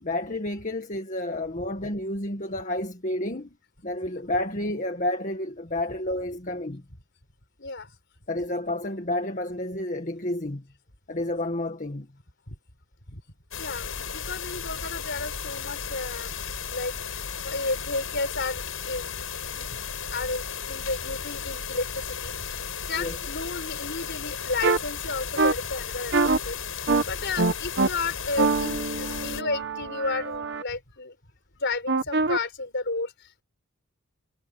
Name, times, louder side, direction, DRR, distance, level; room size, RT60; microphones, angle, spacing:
voice 1, 0.0-3.5 3.8-6.8 8.3-10.7 11.1-12.1 23.0-23.2, left 1 dB, 40° left, 1.9 m, -30 dB
voice 2, 7.6-7.9 12.5-12.6 13.1-13.2 13.6-16.3 16.7-19.1 19.6-31.1 31.6-33.4, left 3 dB, 60° left, 4.7 m, -33 dB
sound 1, 13.5-29.4, left 6 dB, 75° left, 6.9 m, -35 dB
sound 2, 24.6-24.8 25.4-25.5 26.1-26.4 26.9-27.0 27.4-27.9 28.4-30.6 31.9-32.4, right 3 dB, 55° right, 1.3 m, -24 dB
head